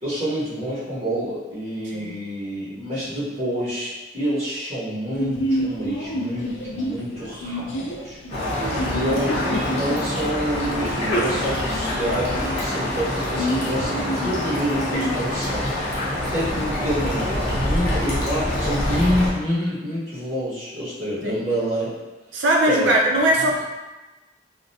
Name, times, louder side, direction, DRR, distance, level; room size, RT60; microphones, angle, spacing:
voice 1, 0.0-8.2 8.9-15.7 16.3-21.9 22.6-23.0 23.4-23.5, equal, 35° right, -13 dB, 0.9 m, -27 dB
voice 2, 1.9-2.2 8.6-9.0 21.2-21.4 22.3-23.6, right 1 dB, 80° right, -1 dB, 0.5 m, -21 dB
Sneeze, 5.2-15.1, equal, 90° left, 0.4 m, -29 dB
sound 1, 8.3-19.3, left 1 dB, 35° left, 0.7 m, -26 dB
2.4 x 2.1 x 2.6 m, 1.1 s
head